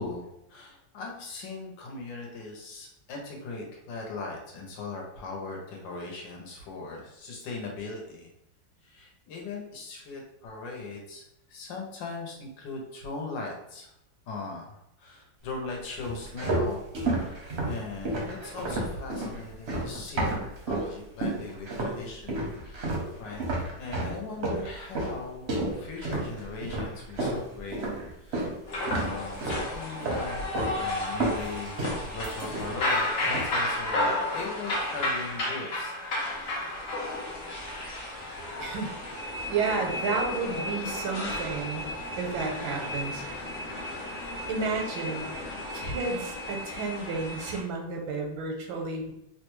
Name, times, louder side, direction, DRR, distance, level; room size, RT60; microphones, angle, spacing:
voice 1, 0.0-8.3 8.8-13.9 14.3-16.8 17.1-20.4 20.7-22.9 23.2-25.5 25.7-27.8 28.2-28.5 28.9-30.5 30.7-31.8 32.1-35.9, left 3 dB, 75° left, 0 dB, 1.4 m, -39 dB
sound 1, 16.0-20.9 21.2-22.0 22.3-28.6 28.9-29.7 30.0-30.8 31.0-32.9 33.2-33.6, right 2 dB, 60° right, 0.7 m, -31 dB
sound 2, 28.7-47.6, left 1 dB, 55° left, 0.7 m, -33 dB
voice 2, 38.6-41.9 42.2-43.2 44.5-45.3 45.7-49.1, right 4 dB, 85° right, 2 dB, 1.4 m, -32 dB
3.4 x 2.1 x 3.0 m, 0.80 s
omnidirectional pair, 2.1 m